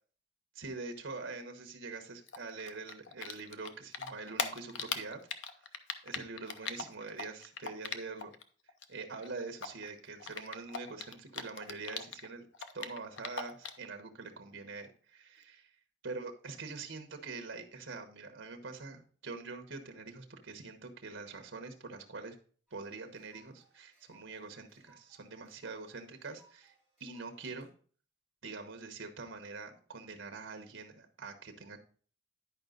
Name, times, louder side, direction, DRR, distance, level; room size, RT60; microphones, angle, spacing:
voice 1, 0.5-5.2 6.0-8.3 8.9-12.4 12.7-15.7 16.0-22.3 22.7-26.7 27.0-27.7 28.4-31.8, right 4 dB, 75° right, 5 dB, 1.1 m, -44 dB
Typing, 2.3-3.7 3.9-8.4 8.7-12.3 12.5-13.9, left 6 dB, 70° left, 0.7 m, -39 dB
sound 1, 22.7-27.7, right 3 dB, ahead, 3.9 m, -67 dB
10.5 x 5.0 x 3.9 m, 0.43 s
head